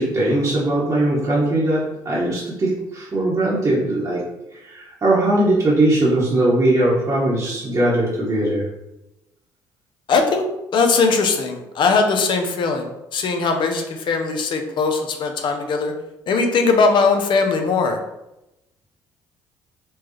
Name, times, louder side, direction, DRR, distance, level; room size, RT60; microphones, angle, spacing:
voice 1, 0.0-4.2 4.5-8.7, right 1 dB, 35° right, -7 dB, 1.1 m, -20 dB
voice 2, 10.1-10.4 10.7-15.9 16.3-18.0, left 4 dB, 60° left, 5 dB, 0.7 m, -20 dB
4.5 x 2.3 x 3.1 m, 0.92 s
supercardioid pair, 60°, 9 cm